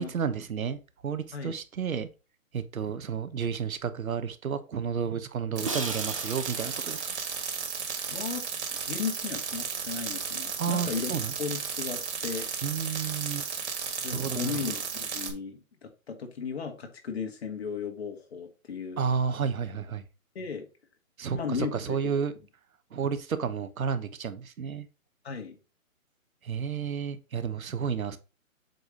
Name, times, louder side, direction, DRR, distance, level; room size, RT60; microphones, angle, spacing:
voice 1, 0.0-2.1 2.5-7.0 10.6-11.3 12.6-13.5 14.1-14.6 19.0-20.0 21.2-22.3 22.9-24.9 26.4-28.2, right 6 dB, 80° right, 1.1 m, -31 dB
sound 1, 5.5-15.3, right 6 dB, 55° right, 1.9 m, -34 dB
Crash cymbal, 5.6-8.6, right 3 dB, 25° right, 0.5 m, -40 dB
voice 2, 8.1-8.4 8.7-11.1 11.4-12.5 14.0-19.0 20.3-20.7 21.3-22.0 25.2-25.6, left 6 dB, 45° left, 1.6 m, -35 dB
7.9 x 3.1 x 5.1 m
hypercardioid pair, 170°, 41 cm